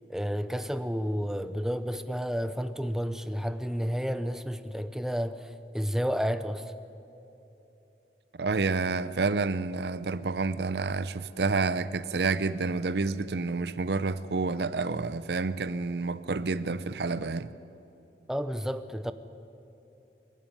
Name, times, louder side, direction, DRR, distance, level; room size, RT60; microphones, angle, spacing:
voice 1, 0.1-6.7 18.3-19.1, equal, 5° right, 0.7 m, -31 dB
voice 2, 8.4-17.5, right 4 dB, 65° right, 0.6 m, -29 dB
25.5 x 11.5 x 9.5 m
head